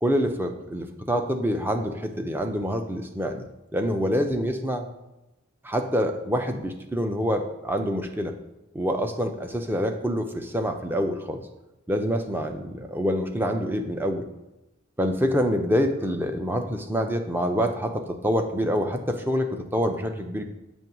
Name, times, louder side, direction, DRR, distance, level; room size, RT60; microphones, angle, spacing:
voice 1, 0.0-3.5 3.7-4.9 5.6-8.3 8.7-11.4 11.9-14.2 15.0-20.4, equal, 10° right, 5 dB, 0.5 m, -26 dB
7.3 x 3.0 x 5.9 m, 0.95 s
head